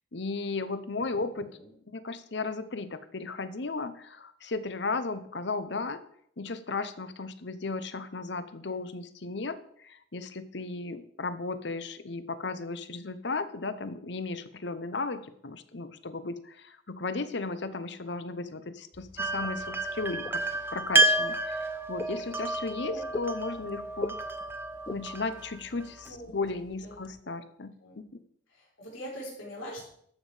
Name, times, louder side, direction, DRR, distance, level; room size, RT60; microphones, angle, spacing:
voice 1, 0.1-1.5 1.9-6.0 6.4-20.4 20.7-24.2 24.9-28.0, left 3 dB, 60° left, 13 dB, 0.8 m, -35 dB
sound 1, 18.9-27.2, left 2 dB, 20° left, 0.4 m, -44 dB
sound 2, 19.2-26.1, right 2 dB, 10° right, 0.7 m, -30 dB
voice 2, 26.1-26.5 26.8-27.0 27.8-28.0 28.5-29.8, equal, 90° left, -3 dB, 4.5 m, -43 dB
12.5 x 7.5 x 5.0 m, 0.67 s
head